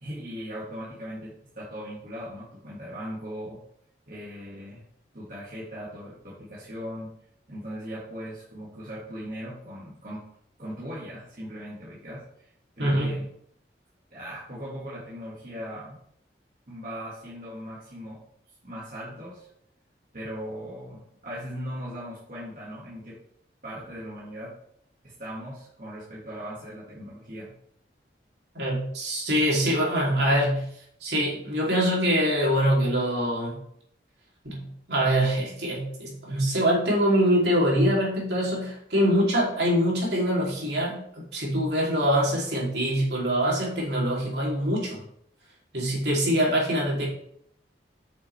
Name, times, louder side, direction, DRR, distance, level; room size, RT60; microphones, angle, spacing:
voice 1, 0.0-3.6 4.1-4.8 5.1-7.1 7.5-10.3 10.6-12.5 12.8-13.3 14.1-16.0 16.7-18.2 18.6-19.5 20.1-23.2 23.6-24.6 25.0-27.6, equal, 50° right, -7 dB, 2.0 m, -39 dB
voice 2, 12.8-13.2 28.5-30.7 31.0-33.6 34.4-45.0 45.7-47.1, equal, 70° right, -4 dB, 3.0 m, -24 dB
8.8 x 6.2 x 3.4 m, 0.70 s
head